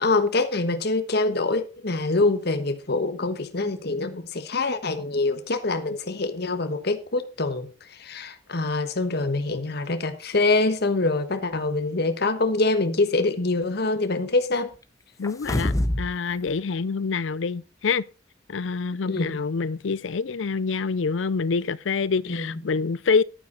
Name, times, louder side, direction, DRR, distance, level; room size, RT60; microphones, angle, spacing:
voice 1, 0.0-7.7 8.0-14.7 19.0-19.4 22.3-22.5, left 3 dB, 60° left, 1.3 m, -25 dB
voice 2, 15.2-18.0 18.5-23.2, left 5 dB, 85° left, 0.5 m, -26 dB
sound 1, 15.2-16.1 16.5-16.6, left 1 dB, 20° left, 0.7 m, -25 dB
11.5 x 9.2 x 4.0 m
head